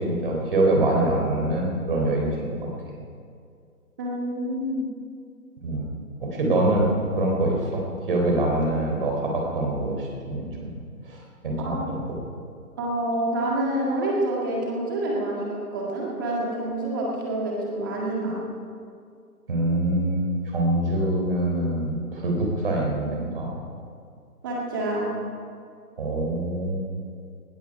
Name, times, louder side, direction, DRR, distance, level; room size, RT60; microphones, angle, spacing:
voice 1, 0.0-2.7 5.6-5.9 6.2-10.7 11.0-12.2 19.5-23.5 26.0-26.9, right 1 dB, 35° right, 0 dB, 3.7 m, -25 dB
voice 2, 4.0-4.9 11.6-11.9 12.8-18.4 24.4-25.1, right 1 dB, 15° right, -3 dB, 1.8 m, -27 dB
19.0 x 13.0 x 4.9 m, 2.3 s
figure-of-eight pair, 165°, 47 cm